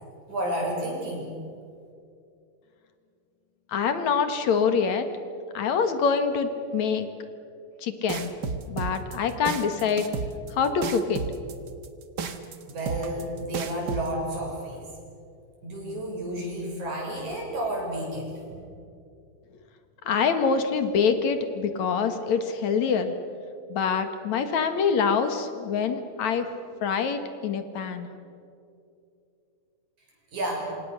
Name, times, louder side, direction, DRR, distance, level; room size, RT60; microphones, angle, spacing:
voice 1, 0.3-1.4 12.7-14.8 15.6-18.6 30.3-30.7, right 1 dB, 75° right, -1 dB, 8.0 m, -31 dB
voice 2, 3.7-5.1 5.5-7.1 7.8-8.3 8.7-10.1 10.6-11.2 20.1-23.1 23.7-26.5 26.8-28.1, left 6 dB, 70° left, 8 dB, 2.9 m, -25 dB
sound 1, 8.1-14.1, right 5 dB, 45° right, 1.5 m, -32 dB
27.0 x 26.0 x 6.7 m, 2.5 s
omnidirectional pair, 3.4 m